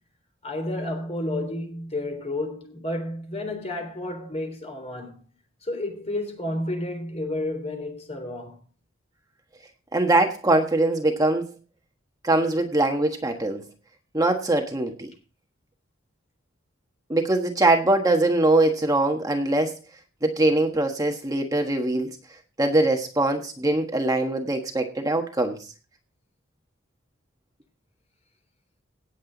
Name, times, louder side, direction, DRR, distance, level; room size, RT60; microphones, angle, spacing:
voice 1, 0.4-5.2 5.6-8.6, left 1 dB, 35° left, 3.6 m, -31 dB
voice 2, 9.9-11.5 12.2-13.6 14.1-15.1 17.1-19.8 20.2-22.2 22.6-25.7, right 2 dB, 20° right, 1.3 m, -22 dB
17.5 x 7.7 x 3.9 m
head